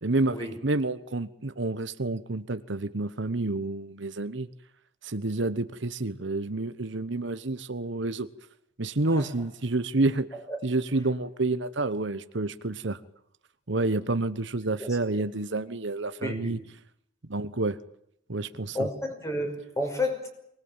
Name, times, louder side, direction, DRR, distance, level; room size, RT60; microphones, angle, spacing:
voice 1, 0.0-4.5 5.0-8.3 8.8-10.3 10.6-13.0 13.7-16.6 17.2-17.8 18.3-18.9, right 2 dB, 65° right, 1.1 m, -29 dB
voice 2, 16.2-16.6 18.7-20.3, left 1 dB, 15° left, 5.7 m, -31 dB
23.5 x 20.5 x 8.9 m
head